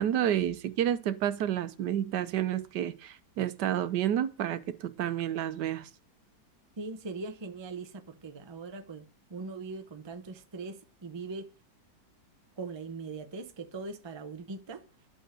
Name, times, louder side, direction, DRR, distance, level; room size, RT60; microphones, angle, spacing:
voice 1, 0.0-5.9, right 10 dB, 80° right, 1.4 m, -30 dB
voice 2, 6.8-11.5 12.6-14.8, right 3 dB, 25° right, 0.6 m, -41 dB
9.7 x 5.6 x 7.4 m
omnidirectional pair, 1.8 m